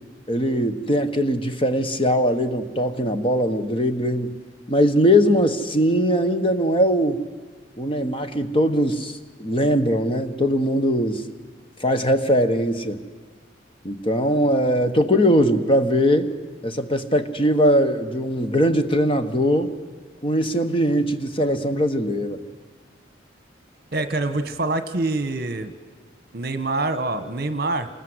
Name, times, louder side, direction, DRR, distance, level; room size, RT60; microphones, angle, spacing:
voice 1, 0.3-4.4 4.7-7.2 7.8-11.2 11.8-13.0 13.8-16.3 16.6-19.7 20.2-22.4, equal, 30° left, 8 dB, 1.3 m, -21 dB
voice 2, 23.9-25.7 26.3-27.9, right 2 dB, 50° right, 10 dB, 1.3 m, -25 dB
27.0 x 20.0 x 8.1 m, 1.5 s
head